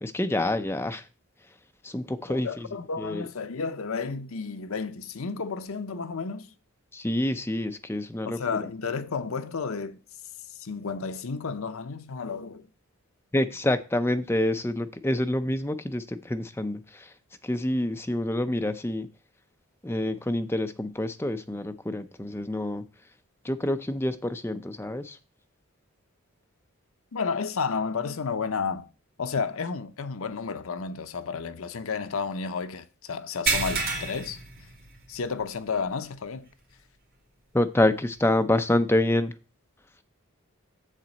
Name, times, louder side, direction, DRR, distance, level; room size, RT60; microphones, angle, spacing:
voice 1, 0.0-1.1 1.8-2.7 3.0-3.2 6.9-8.7 13.3-17.1 17.4-19.1 19.8-22.8 23.4-25.2 37.5-39.3, left 1 dB, 10° left, 0.5 m, -27 dB
voice 2, 2.3-6.5 8.3-10.0 10.6-12.7 27.1-28.9 29.2-34.4 35.1-36.5, left 5 dB, 70° left, 0.6 m, -32 dB
sound 1, 33.5-35.3 35.7-35.9 36.4-36.5 38.1-38.2, right 4 dB, 45° right, 2.4 m, -29 dB
7.4 x 7.2 x 4.0 m
head